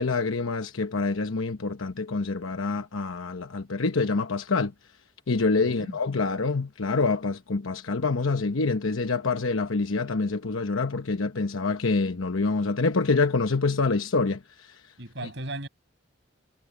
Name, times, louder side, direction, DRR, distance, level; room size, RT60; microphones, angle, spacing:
voice 1, 0.0-4.7 5.3-14.4, left 3 dB, 85° left, 1.0 m, -26 dB
voice 2, 5.6-6.0 15.0-15.7, right 1 dB, 60° right, 6.5 m, -36 dB
head